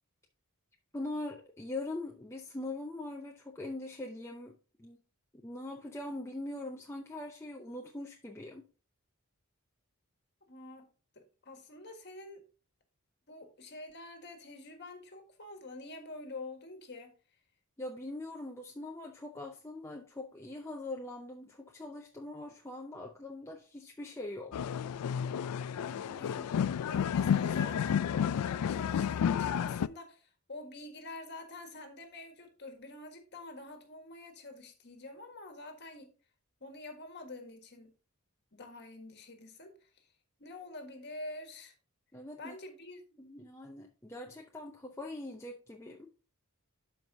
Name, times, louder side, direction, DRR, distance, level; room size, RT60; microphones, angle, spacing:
voice 1, 0.9-4.5 4.8-5.0 5.4-8.7 17.8-24.5 42.1-42.5 43.2-46.1, left 2 dB, 10° left, 0.6 m, -42 dB
voice 2, 10.5-10.9 11.1-12.4 13.3-17.1 25.8-26.5 26.8-36.1 36.6-37.9 38.5-39.9 40.4-41.7 42.4-43.2, left 2 dB, 50° left, 1.6 m, -47 dB
sound 1, 24.5-29.9, left 8 dB, 85° left, 0.3 m, -31 dB
12.0 x 4.7 x 2.7 m
head